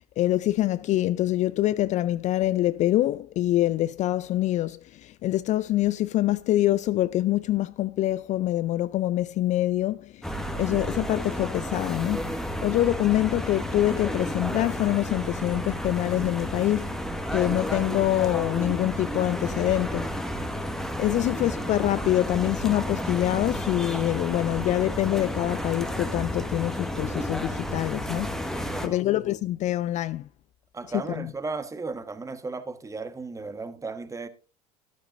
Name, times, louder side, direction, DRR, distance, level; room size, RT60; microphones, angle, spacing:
voice 1, 0.0-17.0 17.3-20.1 21.0-30.3 30.9-31.3, left 14 dB, 40° left, 0.4 m, -25 dB
sound 1, 10.2-28.9, equal, ahead, 1.5 m, -32 dB
voice 2, 28.5-29.0 30.7-34.3, right 3 dB, 15° right, 1.3 m, -35 dB
13.0 x 12.0 x 2.5 m
figure-of-eight pair, 70°, 19 cm